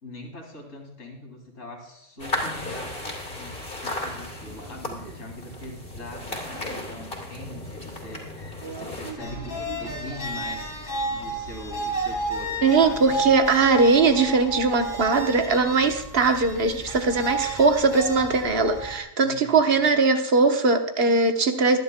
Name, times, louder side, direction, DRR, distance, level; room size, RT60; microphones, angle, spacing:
voice 1, 0.0-2.9 3.3-8.3 8.6-10.7 11.1-13.2 19.2-19.8, left 1 dB, 75° left, 1 dB, 3.0 m, -42 dB
sound 1, 2.2-9.1, left 1 dB, 45° left, 2.9 m, -35 dB
voice 2, 8.6-9.2 12.6-21.8, right 4 dB, 55° right, 5 dB, 1.2 m, -20 dB
sound 2, 9.2-19.0, right 2 dB, 15° left, 2.5 m, -32 dB
22.5 x 10.5 x 2.2 m, 0.84 s
omnidirectional pair, 1.3 m